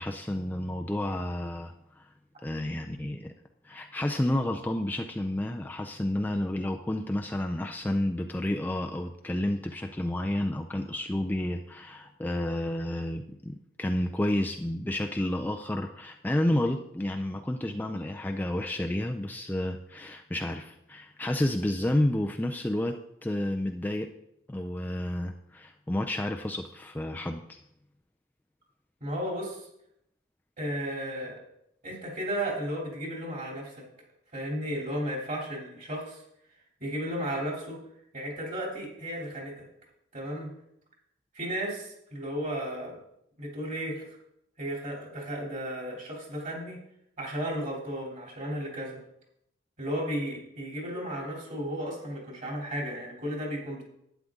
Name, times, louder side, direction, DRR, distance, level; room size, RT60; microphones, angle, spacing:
voice 1, 0.0-2.1 2.4-3.3 3.6-23.0 23.2-24.1 24.5-27.6, left 1 dB, 10° left, 3 dB, 0.4 m, -30 dB
voice 2, 29.0-29.7 30.6-31.4 31.8-33.8 34.3-36.2 36.8-37.8 38.1-39.6 40.1-40.5 41.3-42.9 43.4-44.0 44.6-46.8 47.2-49.0 49.8-53.8, equal, 40° right, -1 dB, 3.1 m, -34 dB
11.5 x 9.2 x 3.7 m, 0.78 s
head